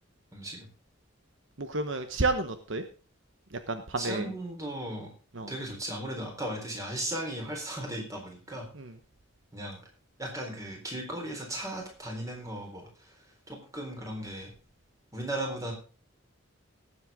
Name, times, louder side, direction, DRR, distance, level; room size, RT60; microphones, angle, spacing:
voice 1, 0.3-0.7 4.0-5.1 5.5-8.7 9.5-9.8 10.2-13.1 13.5-14.5 15.1-15.7, right 1 dB, 15° right, 1 dB, 4.0 m, -36 dB
voice 2, 1.6-2.8 3.7-4.3 5.3-5.5 8.7-8.9, right 3 dB, 65° right, 9 dB, 1.1 m, -30 dB
18.0 x 7.8 x 3.6 m, 0.36 s
head